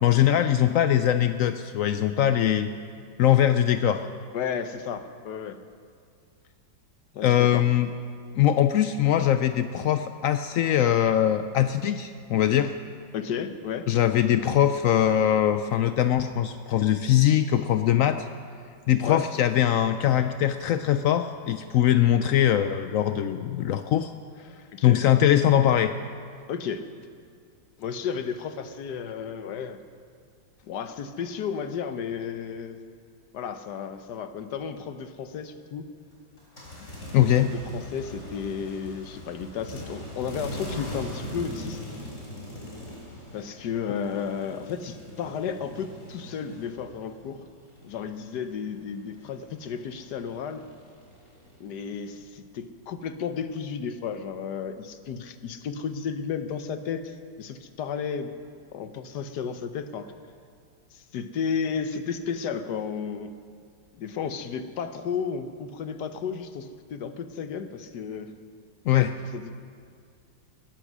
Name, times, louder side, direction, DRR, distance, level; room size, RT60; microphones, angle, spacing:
voice 1, 0.0-2.7 3.2-4.0 7.2-7.9 8.4-12.7 13.9-18.3 18.9-24.1 24.8-25.9 37.1-37.5 68.9-69.1, left 11 dB, 85° left, 9 dB, 0.7 m, -22 dB
voice 2, 4.3-5.6 7.1-7.7 13.1-13.9 19.0-19.2 24.7-25.0 26.5-26.8 27.8-29.8 30.7-32.8 33.3-35.9 37.4-41.8 43.3-47.5 47.8-50.6 51.6-58.3 58.7-60.1 60.9-63.3 63.9-68.3 69.3-69.5, left 6 dB, 70° left, 10 dB, 1.4 m, -33 dB
sound 1, 36.4-47.2 47.5-51.6, left 1 dB, 40° left, 4.2 m, -41 dB
20.5 x 11.0 x 6.2 m, 2.2 s
omnidirectional pair, 2.0 m